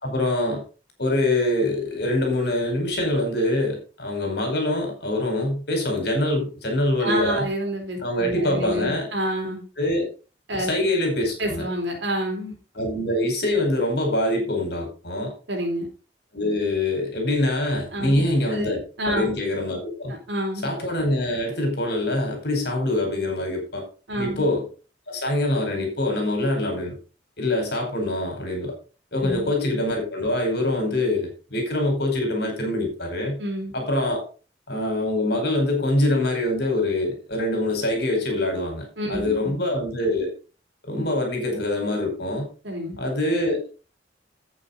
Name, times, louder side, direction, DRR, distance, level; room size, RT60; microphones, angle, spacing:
voice 1, 0.0-0.6 1.0-7.4 8.0-9.1 9.8-10.1 10.6-11.7 12.7-15.3 16.3-20.1 20.6-23.9 24.2-24.7 25.1-27.0 27.4-28.7 29.1-33.4 33.7-34.2 34.7-40.3 40.8-42.5 43.0-43.7, left 1 dB, 65° left, 3 dB, 4.8 m, -24 dB
voice 2, 7.0-9.6 10.5-10.7 11.4-12.5 15.5-15.9 17.9-18.7 19.0-19.3 20.1-20.7 24.1-24.5 29.2-29.5 33.4-33.7 39.0-39.5 42.6-43.0, equal, 80° right, 1 dB, 4.0 m, -28 dB
11.0 x 8.7 x 3.9 m, 0.34 s
head